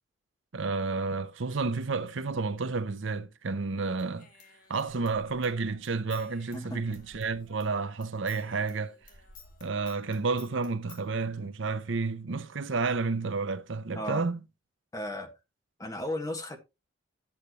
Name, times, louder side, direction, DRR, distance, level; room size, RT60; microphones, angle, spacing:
voice 1, 0.5-4.3 4.7-8.9 9.6-14.4, right 4 dB, 65° right, 0.7 m, -31 dB
Human voice / Scissors, 4.0-7.7 8.0-11.0, left 4 dB, 45° left, 2.7 m, -54 dB
voice 2, 6.5-7.0 13.9-14.2 14.9-15.3 15.8-16.6, left 1 dB, 15° left, 1.5 m, -35 dB
9.8 x 8.6 x 3.0 m
head